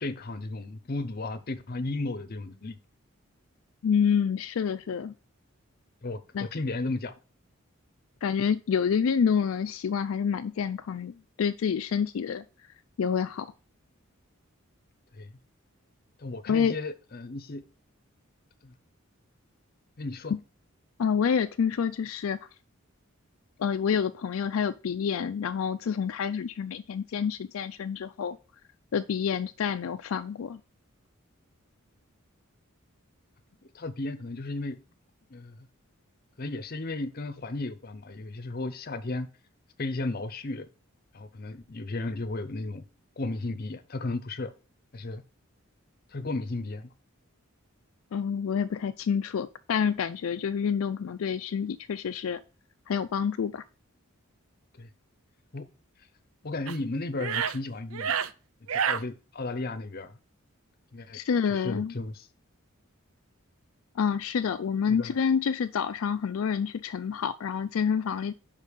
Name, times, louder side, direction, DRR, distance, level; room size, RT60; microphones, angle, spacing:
voice 1, 0.0-2.8 6.0-7.1 15.1-15.3 16.2-17.6 18.6-18.7 20.0-20.3 33.7-34.8 35.3-35.5 36.4-39.3 39.8-40.7 41.1-42.8 43.2-44.5 44.9-45.2 46.1-46.9 54.8-54.9 55.5-55.7 56.4-58.2 58.7-60.1 60.9-61.2 61.5-62.3 64.9-65.2, left 2 dB, 45° left, 0.7 m, -34 dB
voice 2, 3.8-5.1 6.3-6.5 8.2-11.1 11.4-12.4 13.0-13.5 16.5-16.8 21.0-22.4 23.6-28.4 28.9-30.6 48.1-52.4 52.9-53.6 61.1-61.9 64.0-68.3, left 7 dB, 75° left, 0.4 m, -28 dB
sound 1, 56.7-56.8 57.2-57.6 57.9-58.3 58.7-59.0, right 7 dB, 75° right, 0.5 m, -28 dB
5.3 x 5.3 x 6.4 m
head